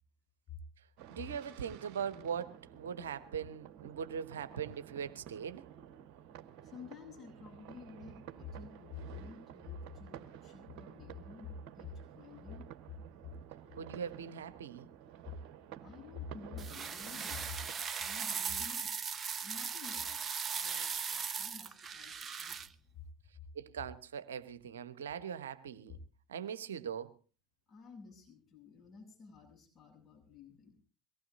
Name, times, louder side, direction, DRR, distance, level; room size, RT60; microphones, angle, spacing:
sound 1, 1.0-17.7, right 10 dB, 60° right, 1.5 m, -52 dB
voice 1, 1.1-5.6 13.8-14.9 23.5-26.0 26.3-27.1, right 7 dB, 80° right, 1.0 m, -41 dB
voice 2, 6.6-12.7 15.8-17.5 18.0-18.9 19.4-20.2 20.5-22.7 23.0-23.1 25.9-26.0 27.7-30.8, left 5 dB, 35° left, 7.6 m, -50 dB
sound 2, 16.6-22.7, right 6 dB, 35° right, 1.1 m, -38 dB
23.5 x 18.0 x 2.7 m
figure-of-eight pair, 65°, 0 cm